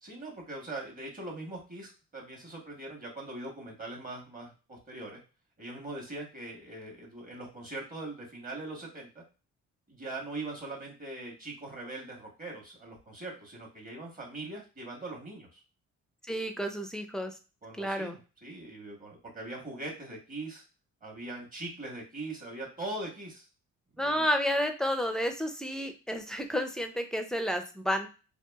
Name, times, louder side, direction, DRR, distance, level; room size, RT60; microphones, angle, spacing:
voice 1, 0.0-5.2 5.6-9.2 9.9-15.6 17.6-20.6 21.0-23.5 24.0-24.3, right 2 dB, 25° right, -2 dB, 1.3 m, -41 dB
voice 2, 16.3-17.3 17.8-18.2 24.0-28.1, equal, ahead, 6 dB, 0.4 m, -31 dB
2.8 x 2.4 x 2.3 m, 0.33 s
cardioid pair, 90°, 30 cm